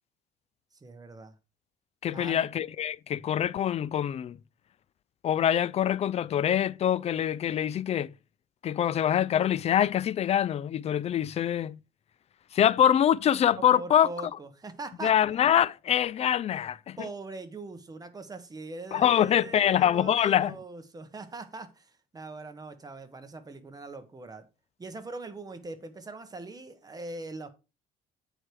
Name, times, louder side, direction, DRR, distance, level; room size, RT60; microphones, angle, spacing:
voice 1, 0.8-1.3 2.1-2.4 13.5-15.1 17.0-24.4 24.8-27.5, right 3 dB, 20° right, 1.4 m, -41 dB
voice 2, 2.0-4.4 5.2-8.1 8.6-11.8 12.5-14.1 15.0-17.0 18.9-20.5, left 10 dB, 40° left, 0.4 m, -24 dB
8.7 x 4.9 x 4.8 m
cardioid pair, 110°, 17 cm